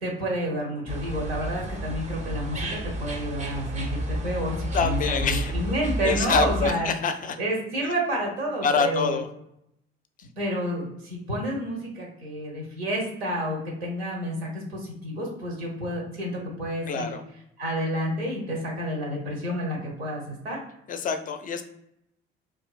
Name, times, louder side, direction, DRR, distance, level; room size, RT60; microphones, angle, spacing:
voice 1, 0.0-6.9 7.4-9.2 10.4-17.1 17.6-20.6, equal, 85° right, -1 dB, 0.8 m, -30 dB
sound 1, 0.9-6.8, right 1 dB, 25° right, 0.5 m, -31 dB
voice 2, 4.7-5.5 6.0-7.4 8.6-9.3 16.9-17.2 20.9-21.6, left 5 dB, 30° left, 8 dB, 0.4 m, -25 dB
2.6 x 2.5 x 2.3 m, 0.79 s
hypercardioid pair, 55°, 30 cm